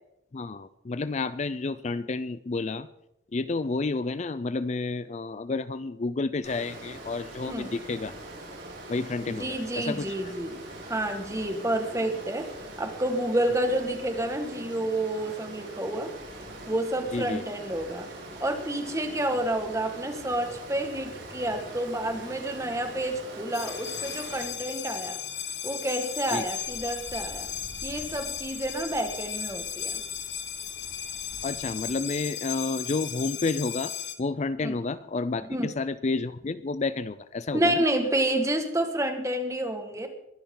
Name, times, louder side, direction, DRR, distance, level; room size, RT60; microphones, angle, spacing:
voice 1, 0.3-2.9 3.3-8.1 8.9-10.3 17.1-17.4 26.3-26.4 31.4-37.8, left 3 dB, 35° left, 14 dB, 0.4 m, -30 dB
Water, 6.4-24.4, right 1 dB, 65° right, 6.6 m, -42 dB
voice 2, 9.3-12.5 12.8-16.1 16.7-18.1 18.4-25.2 25.6-27.5 27.8-30.0 34.6-34.8 35.5-35.7 37.5-40.1, right 1 dB, 15° right, 5 dB, 1.8 m, -29 dB
sound 1, 23.5-34.1, left 9 dB, 65° left, 1.4 m, -36 dB
sound 2, 24.2-31.9, equal, 15° left, 3.4 m, -50 dB
22.0 x 11.5 x 3.9 m, 0.84 s
head